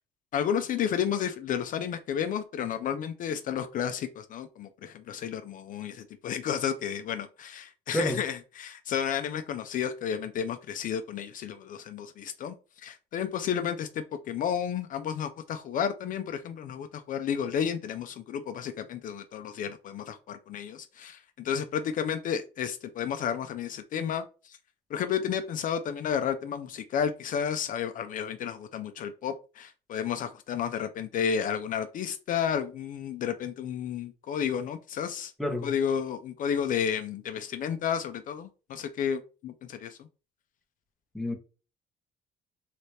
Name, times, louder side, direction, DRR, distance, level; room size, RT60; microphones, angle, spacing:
voice 1, 0.3-24.6 24.9-35.3 35.6-40.1, left 8 dB, 50° left, 0.4 m, -32 dB
voice 2, 35.4-35.7 41.1-41.4, equal, ahead, 0.7 m, -29 dB
3.2 x 2.8 x 3.1 m
cardioid pair, 110°, 17 cm